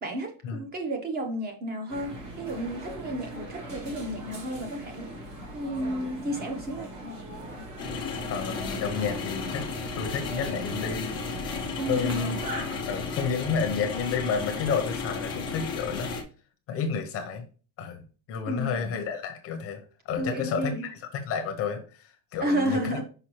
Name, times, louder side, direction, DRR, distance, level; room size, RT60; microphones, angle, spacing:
voice 1, 0.0-5.1 5.5-6.9 11.8-12.3 18.5-18.9 20.2-20.9 22.4-23.0, right 1 dB, 20° right, 5 dB, 0.9 m, -32 dB
sound 1, 1.9-12.9, right 1 dB, 40° right, 1.7 m, -40 dB
sound 2, 7.8-16.2, left 4 dB, 10° left, 0.3 m, -34 dB
voice 2, 8.3-9.6 9.9-11.1 11.8-12.4 12.9-16.2 16.7-17.4 17.8-18.0 18.3-23.0, left 6 dB, 30° left, 6 dB, 0.7 m, -30 dB
5.7 x 5.4 x 3.1 m, 0.37 s
cardioid pair, 175°, 49 cm